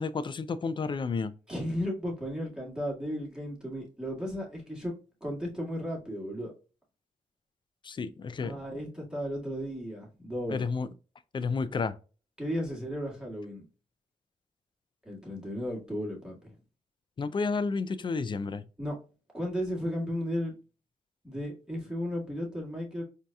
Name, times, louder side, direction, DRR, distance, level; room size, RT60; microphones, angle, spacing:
voice 1, 0.0-1.3 7.8-8.5 10.5-10.9 11.3-11.9 17.2-18.6, left 4 dB, 35° left, 0.4 m, -31 dB
voice 2, 1.5-4.9 5.2-6.5 8.4-10.6 12.4-13.7 15.1-16.5 18.8-19.0 19.3-20.5 21.2-23.0, equal, 5° right, 1.9 m, -34 dB
4.4 x 2.8 x 2.3 m
cardioid pair, 65°, 14 cm